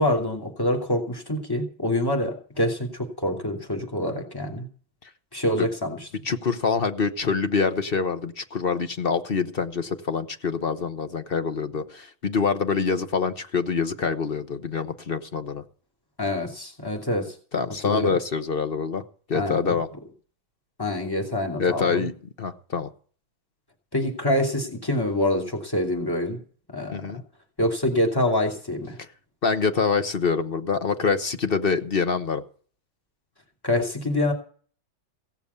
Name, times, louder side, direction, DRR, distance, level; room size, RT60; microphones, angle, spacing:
voice 1, 0.0-4.7 5.3-6.1 16.2-17.4 17.8-18.2 19.3-19.8 20.8-22.1 23.9-26.4 26.7-27.0 27.6-29.0 33.6-34.3, left 1 dB, 10° left, 2 dB, 2.6 m, -26 dB
voice 2, 6.2-15.6 17.5-19.0 19.3-19.9 21.6-22.1 22.4-22.9 26.9-27.2 29.4-32.4, left 5 dB, 40° left, 9 dB, 0.9 m, -25 dB
17.0 x 7.0 x 8.2 m, 0.44 s
omnidirectional pair, 2.1 m